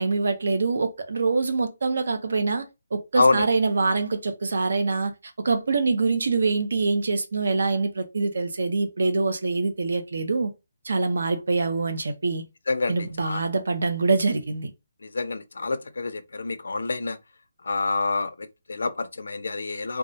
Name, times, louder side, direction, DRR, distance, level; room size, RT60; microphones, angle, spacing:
voice 1, 0.0-5.1 5.4-10.5 10.8-12.4 12.9-14.7, right 3 dB, 70° right, 0.5 m, -24 dB
voice 2, 3.1-3.5 12.7-13.4 15.0-17.2 17.6-20.0, left 3 dB, 80° left, 0.4 m, -27 dB
2.3 x 2.0 x 2.6 m
hypercardioid pair, 175°, 0 cm